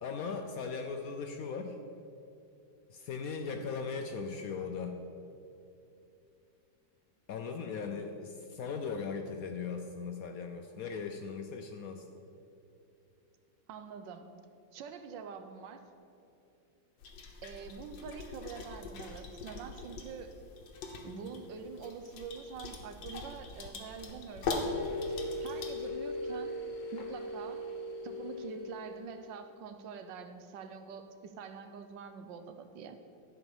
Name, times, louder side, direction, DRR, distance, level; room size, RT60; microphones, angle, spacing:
voice 1, 0.0-1.8 2.9-5.0 7.3-12.0, left 5 dB, 70° left, 5 dB, 0.8 m, -38 dB
voice 2, 13.7-14.3 14.7-15.9 17.4-20.4 21.0-24.9 25.4-26.6 26.9-27.7 28.0-33.0, right 6 dB, 85° right, 9 dB, 1.4 m, -45 dB
sound 1, 17.0-25.9, left 3 dB, 85° left, 1.7 m, -41 dB
sound 2, 24.5-29.4, left 1 dB, 50° left, 1.3 m, -39 dB
11.5 x 4.9 x 7.1 m, 2.8 s
omnidirectional pair, 2.0 m